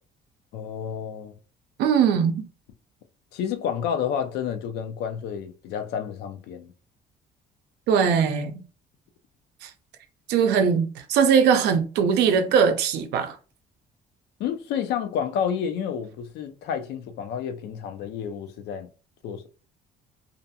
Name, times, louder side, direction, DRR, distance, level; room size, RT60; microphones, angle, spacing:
voice 1, 0.5-1.3 3.3-6.7 14.4-18.9 19.2-19.5, left 8 dB, 80° left, 0.5 m, -30 dB
voice 2, 1.8-2.4 7.9-8.6 9.6-9.7 10.3-13.4, right 7 dB, 80° right, 0.5 m, -21 dB
2.6 x 2.2 x 2.7 m
cardioid pair, 110°, 17 cm